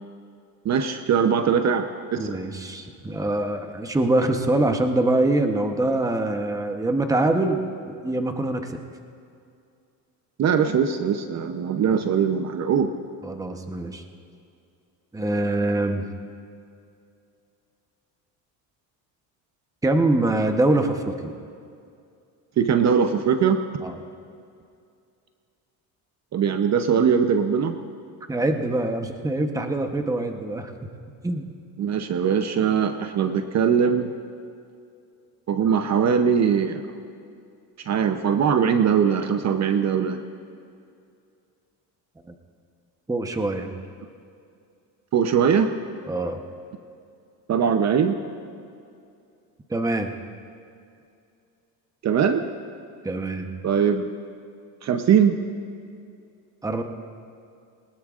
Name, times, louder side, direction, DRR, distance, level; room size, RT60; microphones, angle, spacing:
voice 1, 0.6-2.4 10.4-12.9 22.6-23.6 26.3-27.8 31.8-34.1 35.5-36.8 37.8-40.2 45.1-45.8 47.5-48.2 52.0-52.4 53.6-54.1 54.8-55.4, right 7 dB, 45° right, 8 dB, 0.8 m, -21 dB
voice 2, 2.2-7.6 7.9-8.8 13.2-14.0 15.1-16.1 19.8-21.3 23.8-24.0 28.3-30.7 31.2-31.5 43.1-43.7 46.1-46.4 49.7-50.1 53.0-53.5 56.6-56.8, right 2 dB, 10° right, 5 dB, 0.9 m, -24 dB
21.5 x 19.5 x 2.5 m, 2.4 s
cardioid pair, 115°, 39 cm